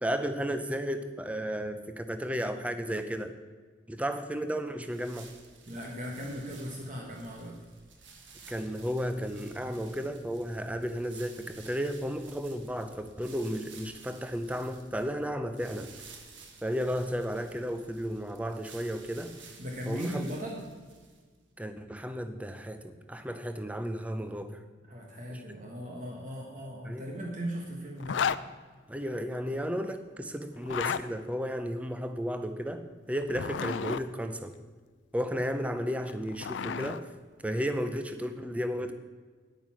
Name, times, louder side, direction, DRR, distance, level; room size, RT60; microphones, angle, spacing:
voice 1, 0.0-3.3 3.9-5.3 8.5-15.9 16.6-19.4 19.9-20.2 21.6-24.6 25.3-25.4 26.8-27.1 28.9-34.6 35.1-37.1 37.4-38.9, equal, 5° right, 9 dB, 0.6 m, -33 dB
sound 1, 4.8-21.4, right 4 dB, 75° right, 1.5 m, -53 dB
voice 2, 5.7-7.6 19.6-20.6 24.9-28.2, equal, 40° right, -1 dB, 1.5 m, -38 dB
Zipper (clothing), 28.0-28.4 30.6-31.0 33.2-34.0 35.9-37.0, left 7 dB, 70° left, 0.4 m, -32 dB
9.6 x 9.2 x 5.8 m, 1.4 s
head